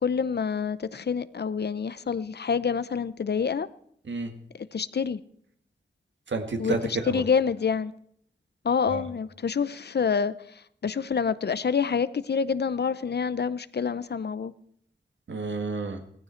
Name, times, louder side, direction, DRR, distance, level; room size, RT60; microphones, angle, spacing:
voice 1, 0.0-3.7 4.5-5.2 6.6-6.8 7.1-7.9 8.6-10.3 10.8-14.5, left 6 dB, 65° left, 0.7 m, -27 dB
voice 2, 6.3-7.2 8.9-9.0 15.3-16.0, right 3 dB, 85° right, 1.8 m, -30 dB
17.5 x 14.5 x 4.4 m
wide cardioid pair, 70°, 19 cm